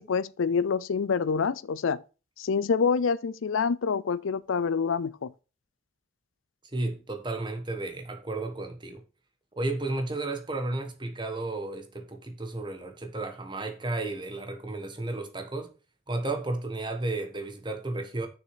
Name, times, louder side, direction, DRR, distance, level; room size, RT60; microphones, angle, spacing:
voice 1, 0.0-2.0 2.4-5.3, left 5 dB, 90° left, 0.5 m, -26 dB
voice 2, 6.6-9.0 9.6-15.7 16.1-18.3, right 2 dB, 25° right, 1.3 m, -33 dB
6.5 x 6.4 x 5.7 m
head